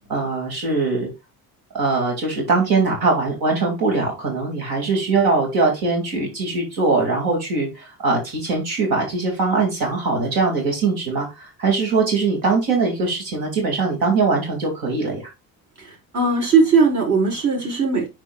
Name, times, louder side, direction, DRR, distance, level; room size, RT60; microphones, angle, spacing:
voice 1, 0.1-1.1 1.7-15.2, right 3 dB, 75° right, 0 dB, 2.6 m, -21 dB
voice 2, 15.8-18.1, right 4 dB, 55° right, -3 dB, 4.3 m, -19 dB
9.9 x 4.5 x 2.3 m, 0.25 s
cardioid pair, 100°, 36 cm